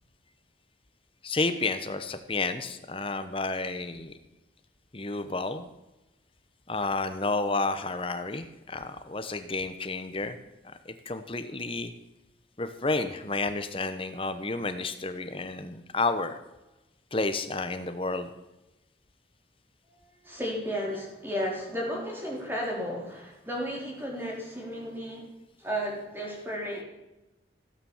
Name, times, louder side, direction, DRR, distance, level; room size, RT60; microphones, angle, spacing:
voice 1, 1.2-4.1 4.9-5.6 6.7-10.4 10.6-11.9 12.6-16.3 17.1-18.3, left 3 dB, 30° left, 9 dB, 1.0 m, -31 dB
voice 2, 19.9-25.3 25.6-26.8, equal, 10° right, -2 dB, 4.0 m, -34 dB
16.5 x 9.0 x 7.3 m, 0.98 s
head